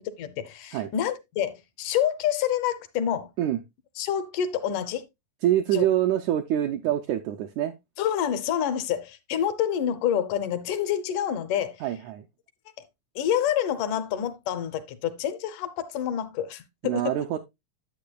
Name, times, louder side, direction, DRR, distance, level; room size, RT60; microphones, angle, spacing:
voice 1, 0.2-3.3 4.0-5.0 5.7-5.9 8.0-11.8 13.2-17.2, left 9 dB, 75° left, 2.2 m, -27 dB
voice 2, 5.4-7.7 11.8-12.3 16.8-17.4, right 12 dB, 80° right, 1.7 m, -25 dB
10.5 x 8.3 x 2.2 m
omnidirectional pair, 3.9 m